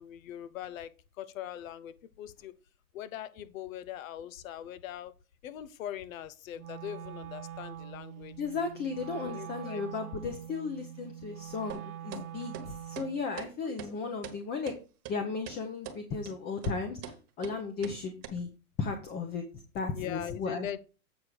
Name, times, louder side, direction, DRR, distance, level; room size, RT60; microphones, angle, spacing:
voice 1, 0.0-2.5 2.9-5.1 5.4-8.4 9.1-9.8 13.7-13.8 19.9-20.8, left 11 dB, 65° left, 0.9 m, -41 dB
Wind instrument woodwind instrument, 6.5-13.3, right 10 dB, 65° right, 1.0 m, -44 dB
voice 2, 8.4-14.8 15.1-18.5 18.8-19.4 19.7-20.7, left 4 dB, 20° left, 0.8 m, -35 dB
sound 1, 11.7-11.8 12.1-12.2 12.5-12.7 13.0-13.1 13.4-13.5 13.8-13.9 14.2-14.4 14.7-14.8 15.0-15.1 15.5-15.6 15.8-16.0 16.3-16.4 16.6-16.8 17.0-17.2 17.4-17.6 17.8-18.0 18.2-18.3, right 8 dB, 35° right, 1.3 m, -42 dB
8.2 x 4.5 x 5.0 m
hypercardioid pair, 135°, 44 cm